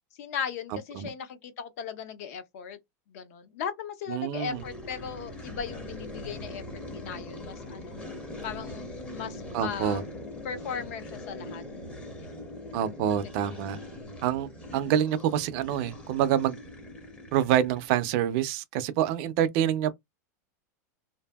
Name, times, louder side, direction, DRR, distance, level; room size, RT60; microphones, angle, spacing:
voice 1, 0.2-2.8 3.1-6.6 6.9-8.0 8.4-8.8 9.1-10.0 10.4-11.6 12.2-12.4, left 7 dB, 60° left, 0.6 m, -37 dB
voice 2, 4.1-4.6 9.5-10.0 12.7-13.8 14.2-16.6 17.3-19.9, right 10 dB, 45° right, 0.4 m, -26 dB
sound 1, 4.4-18.3, left 1 dB, 15° left, 0.6 m, -42 dB
2.6 x 2.5 x 2.2 m
supercardioid pair, 160°, 9 cm